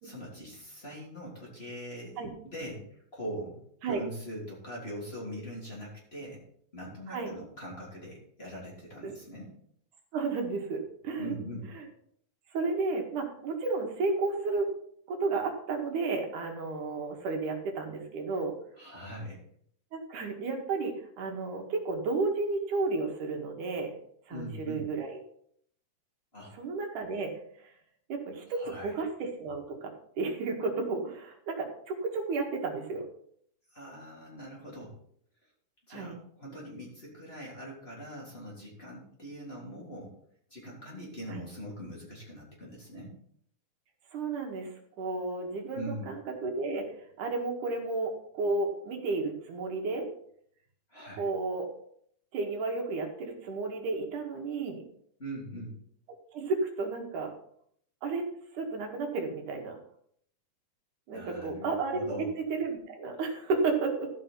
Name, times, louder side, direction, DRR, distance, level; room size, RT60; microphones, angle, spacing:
voice 1, 0.0-2.2 2.4-3.6 3.9-6.4 6.7-9.5 11.1-11.7 18.8-19.4 24.3-24.8 26.3-26.5 28.5-28.9 33.7-34.9 35.9-40.1 40.5-43.1 45.7-46.1 50.9-51.3 55.2-55.7 61.1-62.3, equal, 20° left, -4 dB, 3.3 m, -42 dB
voice 2, 10.1-11.3 12.5-14.7 15.1-18.6 19.9-24.0 24.3-25.2 26.5-27.3 27.6-27.7 28.1-33.0 35.9-36.2 41.3-41.4 44.1-44.7 45.0-46.9 47.2-50.1 51.2-51.7 52.3-54.8 56.1-57.3 58.0-58.3 58.5-59.8 61.1-64.1, right 3 dB, 80° right, 2 dB, 3.2 m, -32 dB
14.0 x 5.6 x 5.7 m, 0.65 s
omnidirectional pair, 3.6 m